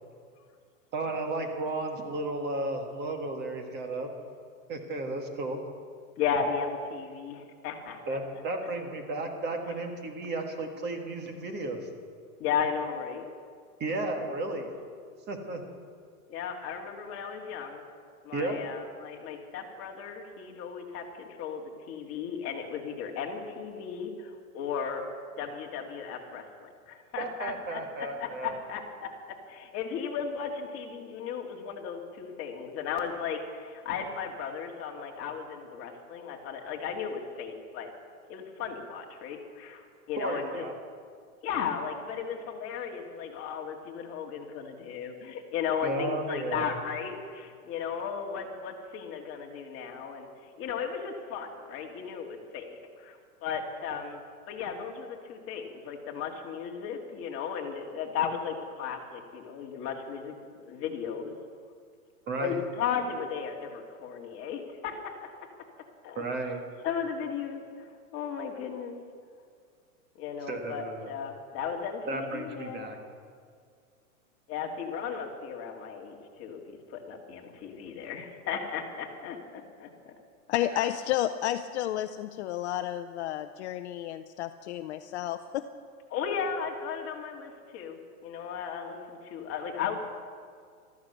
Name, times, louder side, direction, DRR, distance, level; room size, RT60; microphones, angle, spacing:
voice 1, 0.9-4.1 4.7-5.6 8.1-11.9 13.8-14.7 15.3-15.6 18.3-18.6 27.2-28.6 40.2-40.7 45.8-46.7 62.3-62.6 66.2-66.6 70.5-71.1 72.1-73.0 80.7-80.9, right 2 dB, 25° right, 4 dB, 1.8 m, -33 dB
voice 2, 6.2-8.0 12.4-13.2 16.3-17.8 18.2-25.0 25.4-29.1 29.5-37.9 38.3-40.6 41.4-50.3 50.6-54.2 54.5-60.3 60.7-61.3 62.4-65.3 66.0-66.2 66.8-68.9 70.2-72.9 74.5-80.1 86.1-90.0, left 7 dB, 30° left, 1 dB, 2.1 m, -35 dB
voice 3, 80.5-85.7, left 12 dB, 50° left, 10 dB, 0.6 m, -31 dB
14.5 x 14.0 x 6.8 m, 2.1 s
hypercardioid pair, 140°, 44 cm